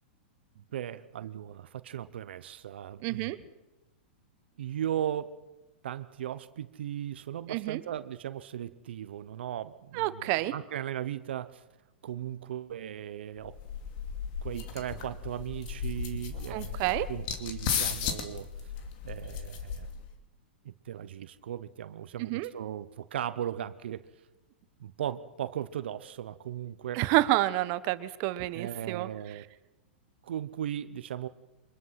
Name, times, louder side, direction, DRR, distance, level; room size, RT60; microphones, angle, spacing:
voice 1, 0.6-3.3 4.6-5.3 5.8-11.6 12.0-13.6 14.4-18.5 19.0-19.9 20.6-24.0 24.8-27.0 28.5-29.5 30.2-31.3, right 10 dB, 75° right, 13 dB, 0.9 m, -37 dB
voice 2, 3.0-3.4 7.5-7.8 9.9-10.5 16.5-17.1 22.2-22.5 26.9-29.1, right 17 dB, 45° right, 14 dB, 1.2 m, -29 dB
sound 1, 13.4-20.1, left 7 dB, 50° left, 2.8 m, -35 dB
24.5 x 21.0 x 5.9 m, 1.0 s
hypercardioid pair, 125°, 6 cm